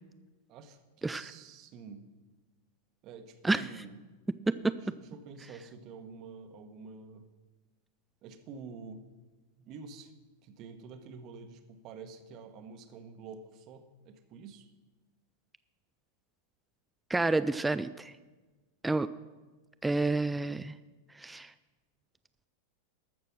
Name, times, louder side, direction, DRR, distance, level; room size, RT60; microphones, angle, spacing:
voice 1, 0.5-2.1 3.0-4.0 4.5-7.3 8.2-9.0 9.6-10.1 10.4-14.7, right 4 dB, 40° right, 8 dB, 1.1 m, -48 dB
voice 2, 17.1-18.1 18.8-19.1 19.8-20.7 21.2-21.5, right 2 dB, 10° right, 13 dB, 0.3 m, -29 dB
13.5 x 6.6 x 6.1 m, 1.3 s
figure-of-eight pair, 90°, 0 cm